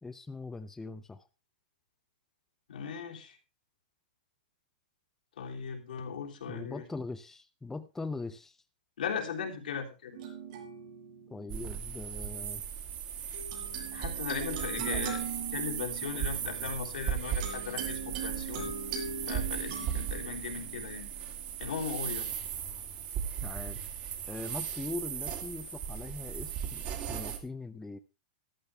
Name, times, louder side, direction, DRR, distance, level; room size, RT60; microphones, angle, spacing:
voice 1, 0.0-1.3 6.5-8.6 11.3-12.6 14.8-15.0 23.4-23.9 24.3-28.0, left 3 dB, 10° left, 8 dB, 0.8 m, -41 dB
voice 2, 2.7-3.4 5.4-6.8 9.0-10.2 13.9-15.2 15.5-18.7 19.3-21.1 21.6-22.3, left 6 dB, 85° left, 1 dB, 3.5 m, -38 dB
sound 1, 10.1-11.9 13.3-21.8, right 6 dB, 60° right, 6.5 m, -41 dB
sound 2, 11.5-27.4, right 9 dB, 40° right, 2.7 m, -37 dB
14.0 x 12.0 x 3.5 m, 0.29 s
hypercardioid pair, 135°, 5 cm